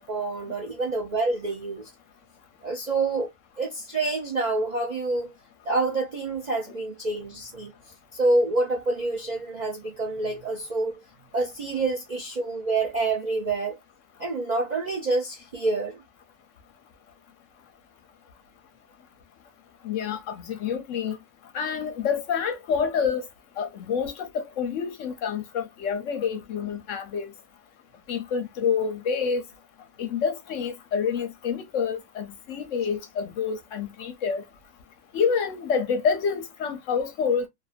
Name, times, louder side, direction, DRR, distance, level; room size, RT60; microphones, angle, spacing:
voice 1, 0.0-1.9 2.6-3.3 3.6-5.3 5.7-7.7 8.1-10.9 11.3-13.8 14.2-16.0, right 3 dB, 50° right, 0.5 m, -27 dB
voice 2, 19.8-21.2 21.5-23.3 23.6-27.3 28.1-29.4 30.0-34.4 35.1-37.4, left 6 dB, 65° left, 0.9 m, -27 dB
2.6 x 2.5 x 2.3 m
omnidirectional pair, 1.6 m